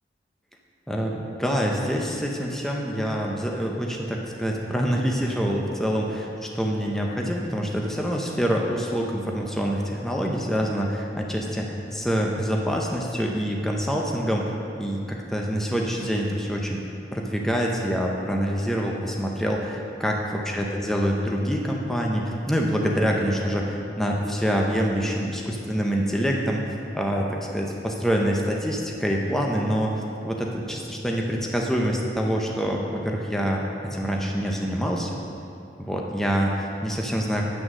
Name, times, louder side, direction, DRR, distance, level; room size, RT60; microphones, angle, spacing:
voice 1, 0.9-16.8 17.1-26.6 26.9-33.6 33.9-35.1 35.8-37.4, equal, ahead, -1 dB, 0.6 m, -26 dB
9.2 x 6.2 x 6.3 m, 2.7 s
head